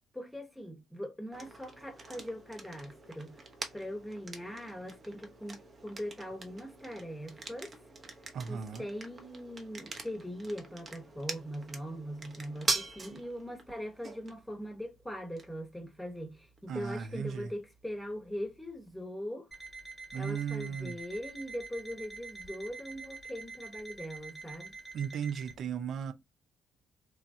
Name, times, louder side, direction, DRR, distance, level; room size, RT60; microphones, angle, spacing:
voice 1, 0.1-3.4 3.7-7.8 8.4-19.5 20.1-24.7, equal, 10° left, 1.0 m, -41 dB
sound 1, 1.3-19.1, right 3 dB, 40° right, 0.8 m, -43 dB
voice 2, 8.3-8.9 13.1-13.2 16.7-17.5 20.1-21.0 24.9-26.1, right 7 dB, 60° right, 0.4 m, -36 dB
Alarm, 19.5-25.6, right 4 dB, 10° right, 1.3 m, -46 dB
3.0 x 2.2 x 2.6 m
hypercardioid pair, 50°, 0 cm